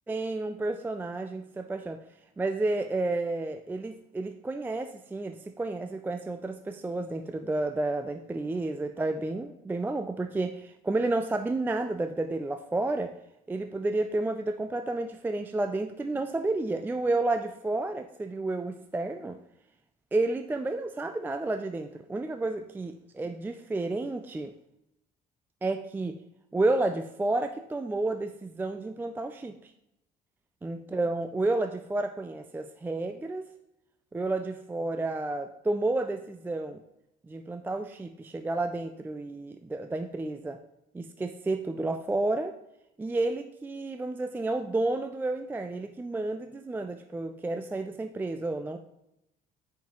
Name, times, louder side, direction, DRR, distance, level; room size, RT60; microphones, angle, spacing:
voice 1, 0.1-2.0 2.4-13.1 13.5-19.4 20.1-24.5 25.6-26.2 26.5-29.7 30.6-33.5 34.1-36.8 37.3-40.6 40.9-42.6 43.0-48.8, right 2 dB, 10° right, 8 dB, 0.3 m, -31 dB
7.1 x 5.7 x 3.0 m, 0.84 s
cardioid pair, 110°, 17 cm